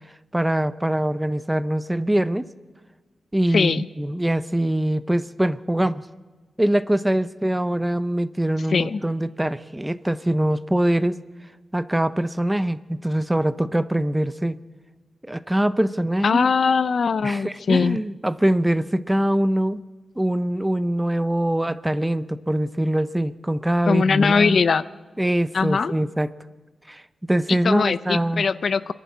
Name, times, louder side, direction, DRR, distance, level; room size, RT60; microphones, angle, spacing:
voice 1, 0.3-2.5 3.3-6.0 6.6-11.2 11.7-14.6 15.2-16.5 17.2-19.8 20.2-24.6 25.2-26.3 26.9-28.5, right 1 dB, 10° right, 15 dB, 0.6 m, -23 dB
voice 2, 3.5-3.9 8.7-9.0 16.2-18.0 23.9-24.8 25.5-25.9 27.6-28.9, left 5 dB, 55° left, 16 dB, 0.5 m, -20 dB
24.5 x 11.5 x 9.5 m, 1.3 s
wide cardioid pair, 120°, 0 cm